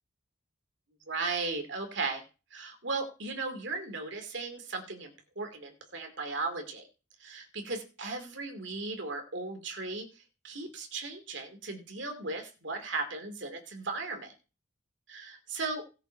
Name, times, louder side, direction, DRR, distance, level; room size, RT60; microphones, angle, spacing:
voice 1, 1.1-2.2 2.5-6.9 7.2-10.1 10.4-14.3 15.1-15.8, right 3 dB, 70° right, 5 dB, 2.5 m, -36 dB
17.0 x 6.7 x 4.5 m, 0.34 s
head